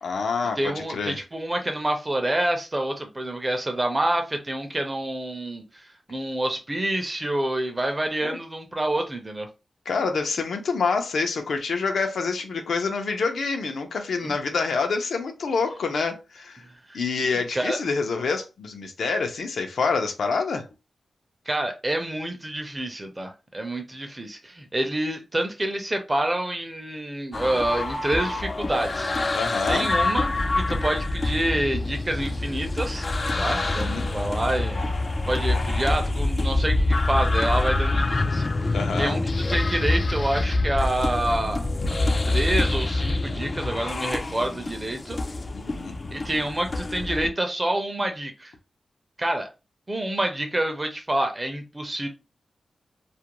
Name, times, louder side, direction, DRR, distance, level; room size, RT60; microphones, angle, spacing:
voice 1, 0.0-1.2 8.2-8.4 9.9-16.6 16.9-20.6 29.3-29.9 33.6-34.1 38.7-39.2 41.8-41.9 45.5-46.0, left 4 dB, 90° left, 0.6 m, -27 dB
voice 2, 0.6-9.5 14.2-14.3 16.6-17.0 17.2-17.8 21.5-29.1 29.7-33.1 33.4-34.8 35.3-38.5 39.0-41.6 42.3-45.2 46.1-48.5 49.2-49.5 49.9-52.1, right 1 dB, 20° right, 0.5 m, -27 dB
sound 1, 27.3-47.3, left 2 dB, 35° left, 0.3 m, -26 dB
2.4 x 2.2 x 2.9 m
wide cardioid pair, 125°, 0 cm